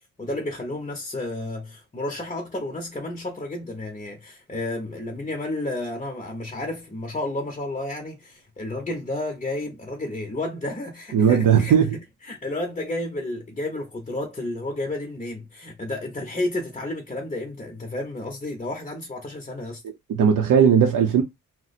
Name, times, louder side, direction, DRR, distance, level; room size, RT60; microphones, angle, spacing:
voice 1, 0.2-11.8 12.2-19.8, left 2 dB, 20° left, 0.7 m, -31 dB
voice 2, 11.1-12.0 20.1-21.2, right 7 dB, 75° right, 0.6 m, -17 dB
2.8 x 2.0 x 4.0 m
wide cardioid pair, 110°, 33 cm